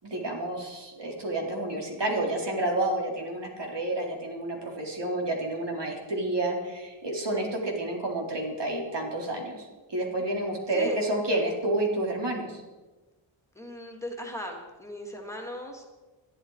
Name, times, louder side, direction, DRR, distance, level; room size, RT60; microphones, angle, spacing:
voice 1, 0.0-12.6, right 1 dB, 60° right, 0 dB, 4.0 m, -30 dB
voice 2, 13.5-15.8, equal, 5° left, 0 dB, 2.9 m, -38 dB
21.5 x 13.0 x 4.9 m, 1.2 s
wide cardioid pair, 105°, 46 cm